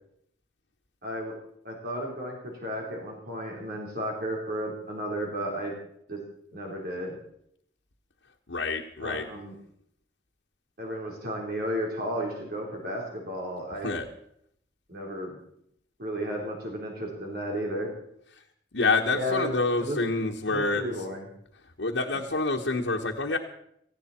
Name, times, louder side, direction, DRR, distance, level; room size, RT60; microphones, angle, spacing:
voice 1, 1.0-1.3 1.6-5.7 6.1-6.2 6.5-7.2 9.0-9.5 10.8-14.0 14.9-15.4 16.0-17.9 19.1-19.5 19.8-20.0 20.5-21.3, equal, 60° right, -1 dB, 4.1 m, -33 dB
voice 2, 8.5-9.3 13.8-14.1 18.7-20.9 21.8-23.4, left 3 dB, 85° left, -1 dB, 1.3 m, -27 dB
18.0 x 15.5 x 4.4 m, 0.70 s
head